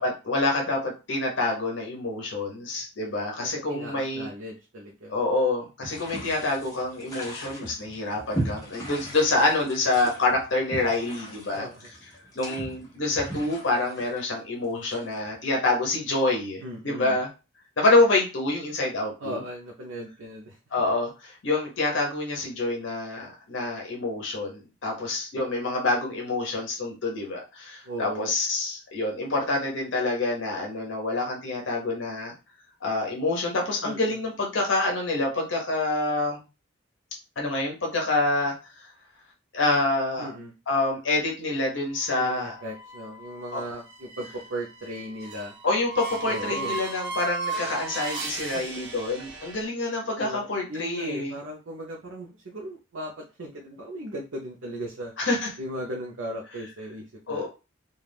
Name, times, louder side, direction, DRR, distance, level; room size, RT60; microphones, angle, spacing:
voice 1, 0.0-4.3 5.1-11.7 12.3-17.3 17.8-19.4 20.7-32.3 32.8-36.4 37.4-38.9 39.5-40.3 40.7-42.5 43.5-43.6 45.6-51.3 55.2-55.5 57.3-57.5, left 2 dB, 70° left, -1 dB, 0.7 m, -27 dB
voice 2, 3.4-5.1 11.5-11.8 16.6-17.2 19.2-20.8 27.8-28.3 33.8-34.2 40.2-40.5 42.1-45.6 46.2-46.8 48.5-48.8 50.2-55.1 55.6-57.5, right 1 dB, 80° right, -2 dB, 0.6 m, -37 dB
sound 1, 5.8-15.4, right 1 dB, 20° left, 0.8 m, -38 dB
sound 2, 41.9-49.6, right 3 dB, 65° right, 0.9 m, -37 dB
2.3 x 2.3 x 3.3 m, 0.29 s
head